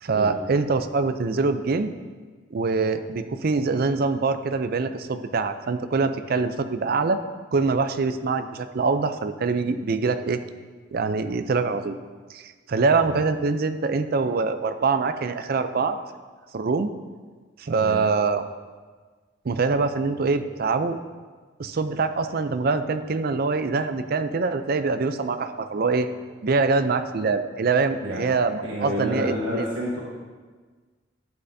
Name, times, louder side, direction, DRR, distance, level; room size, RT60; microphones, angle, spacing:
voice 1, 0.0-1.9 2.5-7.2 7.5-10.4 10.9-12.0 12.3-16.0 16.5-16.9 17.6-18.4 19.4-21.0 21.6-26.1 26.4-29.7, right 4 dB, 50° right, 10 dB, 0.4 m, -24 dB
voice 2, 28.6-30.0, equal, 75° right, -5 dB, 1.3 m, -29 dB
11.5 x 8.0 x 2.7 m, 1.4 s
head